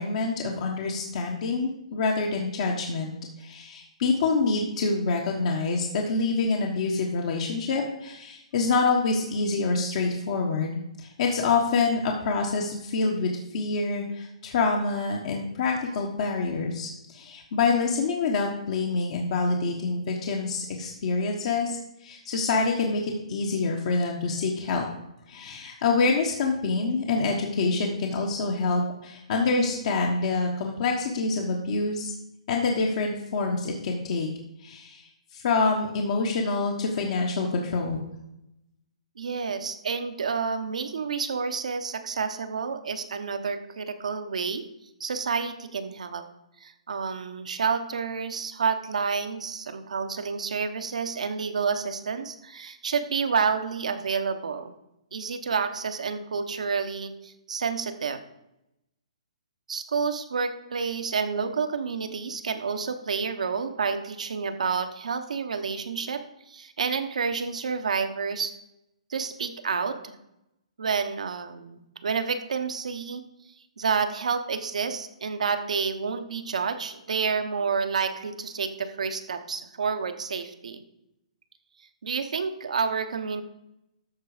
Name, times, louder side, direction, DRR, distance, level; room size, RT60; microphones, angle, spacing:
voice 1, 0.0-24.8 25.3-32.1 32.5-34.3 34.6-38.1, left 3 dB, 50° left, 0 dB, 1.3 m, -26 dB
voice 2, 39.2-44.6 45.0-46.2 46.6-54.7 55.1-58.2 59.7-66.2 66.5-68.5 69.1-70.1 70.8-73.2 73.8-80.8 82.0-83.4, right 5 dB, 80° right, 9 dB, 1.0 m, -29 dB
13.5 x 4.7 x 5.0 m, 0.87 s
hypercardioid pair, 150°, 4 cm